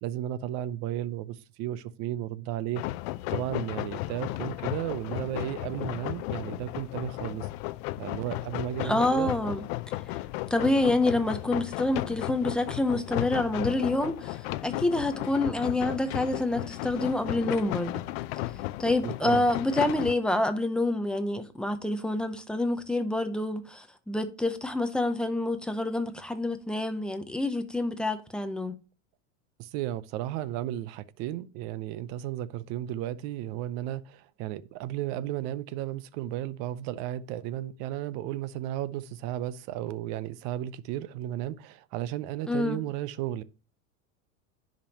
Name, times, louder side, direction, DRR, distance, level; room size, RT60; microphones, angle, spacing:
voice 1, 0.0-2.8 3.3-7.5 8.0-9.3 19.0-19.5 29.6-43.4, right 13 dB, 45° right, 0.6 m, -34 dB
sound 1, 2.7-20.1, left 18 dB, 50° left, 0.5 m, -34 dB
voice 2, 8.8-9.6 10.5-18.0 18.8-28.8 42.5-42.8, left 2 dB, ahead, 0.5 m, -27 dB
10.0 x 5.2 x 2.8 m
supercardioid pair, 145°, 39 cm